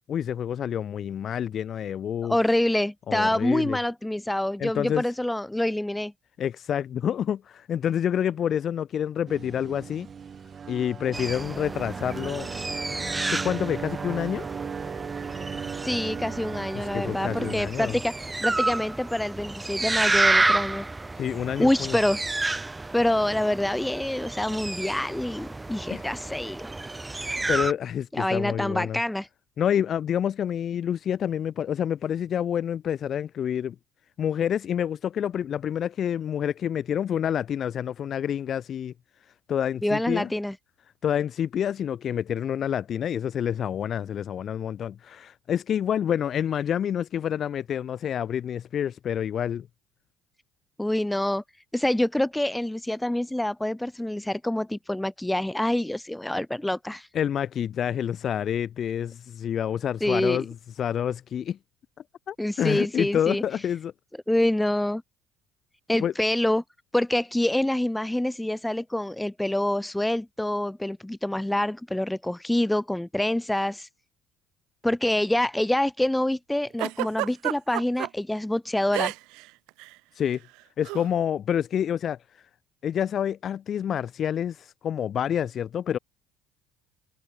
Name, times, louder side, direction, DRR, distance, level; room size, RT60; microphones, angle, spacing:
voice 1, 0.1-2.3 3.1-3.8 4.6-5.0 6.4-10.1 10.7-12.5 13.3-14.5 16.7-18.0 21.2-22.0 25.9-26.1 27.1-29.0 29.6-33.7 34.2-38.9 39.5-40.3 41.0-49.7 57.1-61.6 62.3-63.9 66.0-66.1 80.2-80.4 80.8-82.2 82.8-86.0, left 9 dB, 50° left, 1.0 m, -28 dB
voice 2, 2.3-6.1 15.8-20.9 21.6-22.6 22.9-26.7 28.1-29.3 39.8-40.5 50.8-51.4 51.7-57.1 60.0-60.4 62.4-63.4 64.3-65.0 65.9-66.6 66.9-73.9 74.8-79.1, left 1 dB, 5° left, 1.7 m, -26 dB
sound 1, 9.3-17.5, right 6 dB, 40° right, 6.3 m, -37 dB
sound 2, 11.1-27.7, right 2 dB, 15° right, 0.9 m, -30 dB
Giggle, 76.8-78.1 78.9-79.4 79.7-79.9 80.8-81.1, right 23 dB, 75° right, 1.3 m, -29 dB
supercardioid pair, 80°, 0 cm